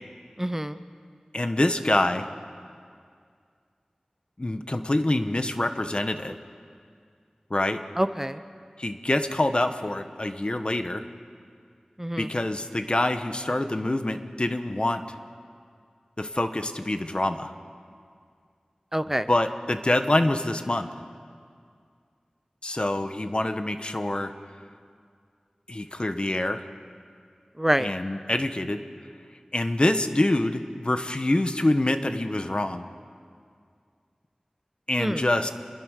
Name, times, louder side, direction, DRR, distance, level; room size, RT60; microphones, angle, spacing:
voice 1, 0.4-0.8 8.0-8.4 12.0-12.3 18.9-19.3 27.6-27.9 35.0-35.3, right 1 dB, 15° right, 11 dB, 0.8 m, -26 dB
voice 2, 1.3-2.3 4.4-6.3 7.5-7.8 8.8-11.0 12.2-15.0 16.2-17.5 19.3-20.9 22.6-24.3 25.7-26.6 27.8-28.8 29.5-32.9 34.9-35.5, left 1 dB, 45° left, 8 dB, 1.3 m, -25 dB
27.5 x 22.0 x 6.6 m, 2.2 s
wide cardioid pair, 45°, 2 cm